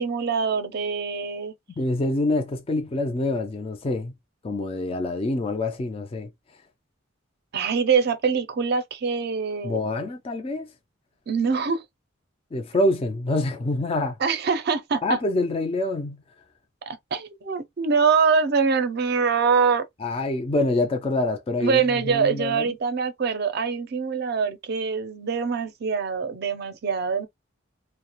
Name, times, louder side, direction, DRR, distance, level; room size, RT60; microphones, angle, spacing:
voice 1, 0.0-1.5 7.5-9.8 11.3-11.8 14.2-15.2 16.9-19.8 21.6-27.3, right 5 dB, 50° right, 0.4 m, -24 dB
voice 2, 1.8-4.1 4.4-6.3 9.6-10.7 12.5-14.2 15.0-16.2 20.0-22.6, left 2 dB, 30° left, 0.3 m, -26 dB
2.3 x 2.0 x 2.8 m
head